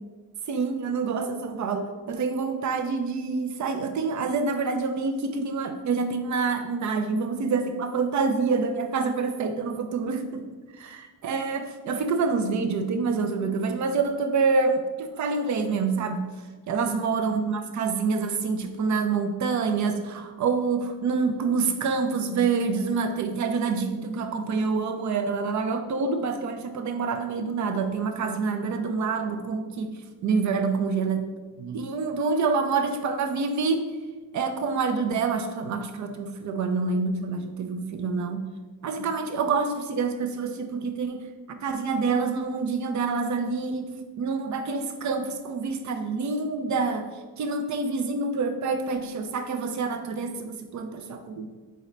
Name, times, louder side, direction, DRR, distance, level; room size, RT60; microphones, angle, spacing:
voice 1, 0.5-10.4 10.8-16.3 16.7-29.9 30.2-31.2 31.6-33.8 34.3-38.4 38.8-41.3 41.6-43.9 44.2-47.1 47.4-51.5, right 4 dB, 45° right, 7 dB, 0.6 m, -27 dB
4.2 x 3.7 x 3.1 m, 1.3 s
supercardioid pair, 75°, 39 cm